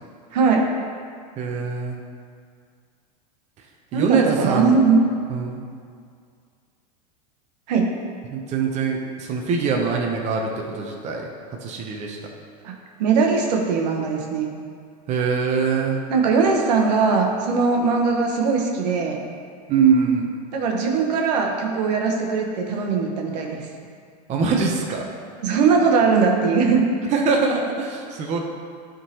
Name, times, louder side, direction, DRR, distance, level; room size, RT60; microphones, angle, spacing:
voice 1, 0.3-0.6 3.9-5.0 7.7-7.9 12.6-12.7 13.0-14.5 16.1-19.2 20.5-23.7 25.4-26.8, right 5 dB, 75° right, 1 dB, 1.0 m, -20 dB
voice 2, 1.4-2.0 3.9-4.8 5.3-5.6 8.3-11.3 11.6-12.2 15.1-16.0 19.7-20.3 24.3-25.1 27.1-28.4, right 5 dB, 35° right, 1 dB, 0.7 m, -23 dB
11.0 x 3.7 x 2.9 m, 2.2 s
supercardioid pair, 120°, 21 cm